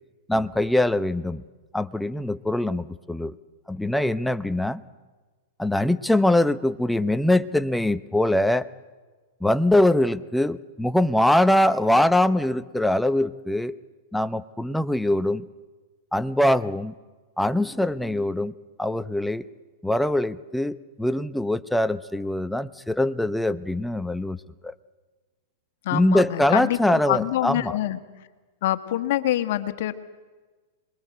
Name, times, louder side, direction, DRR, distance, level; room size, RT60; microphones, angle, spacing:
voice 1, 0.3-1.4 1.7-3.3 3.7-4.8 5.6-8.7 9.4-13.8 14.1-15.5 16.1-16.9 17.4-18.5 18.8-19.4 19.8-24.4 24.6-24.7 25.9-27.7, left 1 dB, 5° left, 13 dB, 0.8 m, -23 dB
voice 2, 25.8-28.0 28.6-29.9, left 13 dB, 65° left, 9 dB, 1.7 m, -25 dB
26.0 x 22.0 x 8.0 m, 1.3 s
hypercardioid pair, 115°, 0 cm